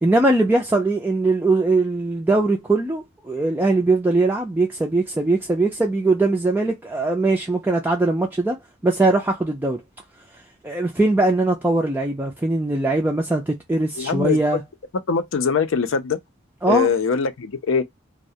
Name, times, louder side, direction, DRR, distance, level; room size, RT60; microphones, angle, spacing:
voice 1, 0.0-8.6 8.8-9.8 10.3-14.6 16.6-16.9, right 2 dB, 10° right, 0.3 m, -21 dB
voice 2, 14.0-14.4 15.1-16.2 16.7-17.8, left 5 dB, 80° left, 0.5 m, -22 dB
2.3 x 2.1 x 2.6 m
head